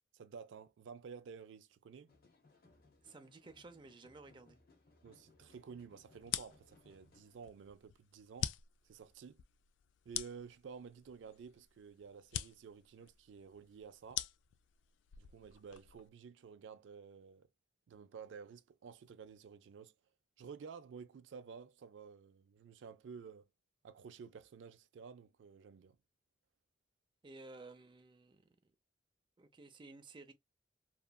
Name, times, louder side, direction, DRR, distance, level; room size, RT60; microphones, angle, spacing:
voice 1, 0.1-2.1 5.0-8.5 8.8-9.4 10.1-14.3 15.2-17.5 17.9-19.9 20.4-23.5 23.8-26.0, right 6 dB, 90° right, 0.4 m, -52 dB
sound 1, 2.1-7.5, left 3 dB, 55° left, 0.9 m, -67 dB
voice 2, 3.0-4.6 27.2-28.7 29.4-30.3, right 3 dB, 25° right, 0.5 m, -55 dB
sound 2, 6.2-16.1, left 11 dB, 90° left, 0.3 m, -45 dB
2.9 x 2.4 x 2.2 m
head